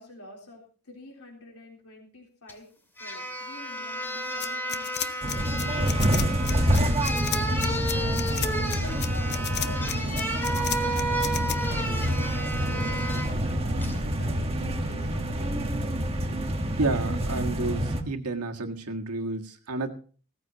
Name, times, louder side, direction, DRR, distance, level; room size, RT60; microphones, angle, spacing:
voice 1, 0.0-2.7 3.0-6.9 7.6-15.7, left 1 dB, 75° left, 0 dB, 3.8 m, -46 dB
sound 1, 2.5-2.6 3.0-13.3 13.8-14.0, right 1 dB, 10° left, 2.2 m, -32 dB
sound 2, 4.4-11.6, left 10 dB, 50° left, 0.8 m, -33 dB
sound 3, 5.2-18.0, equal, 25° right, 1.4 m, -27 dB
voice 2, 16.8-19.9, right 3 dB, 85° right, 3 dB, 1.7 m, -30 dB
17.0 x 14.5 x 2.9 m, 0.40 s
head